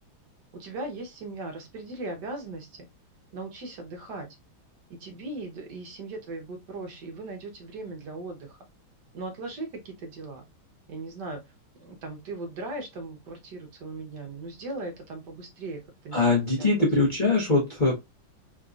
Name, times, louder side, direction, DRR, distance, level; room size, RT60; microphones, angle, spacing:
voice 1, 0.5-2.8 3.3-4.3 4.9-8.6 9.1-10.4 10.9-11.4 11.8-16.7, right 2 dB, 60° right, 3 dB, 1.3 m, -38 dB
voice 2, 16.1-18.0, left 3 dB, 35° left, -5 dB, 0.8 m, -22 dB
3.7 x 2.8 x 2.3 m, 0.20 s
omnidirectional pair, 2.3 m